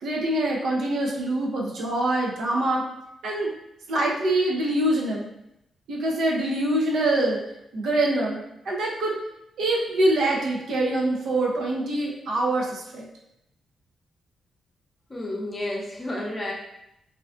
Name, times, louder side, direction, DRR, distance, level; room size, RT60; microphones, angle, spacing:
voice 1, 0.0-2.9 3.2-3.5 3.9-5.3 5.9-7.4 7.7-9.1 9.6-13.1, right 1 dB, 80° right, -2 dB, 0.5 m, -24 dB
voice 2, 15.1-16.5, left 1 dB, 30° left, -2 dB, 0.6 m, -31 dB
2.4 x 2.2 x 2.4 m, 0.83 s
cardioid pair, 100°, 0 cm